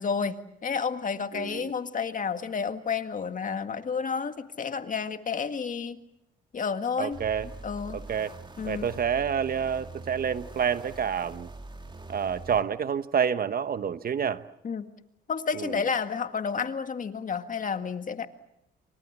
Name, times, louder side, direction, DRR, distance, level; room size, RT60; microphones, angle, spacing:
voice 1, 0.0-6.0 6.5-7.2 7.6-8.0 8.6-8.9 14.6-14.9 15.3-18.3, left 6 dB, 40° left, 9 dB, 1.9 m, -30 dB
voice 2, 1.3-1.7 7.0-7.5 7.9-8.3 8.6-11.5 12.1-14.4 15.5-15.8, right 7 dB, 50° right, 12 dB, 1.1 m, -28 dB
sound 1, 7.1-12.6, right 3 dB, 25° right, 3.5 m, -43 dB
28.5 x 25.0 x 7.4 m, 0.79 s
cardioid pair, 90°, 20 cm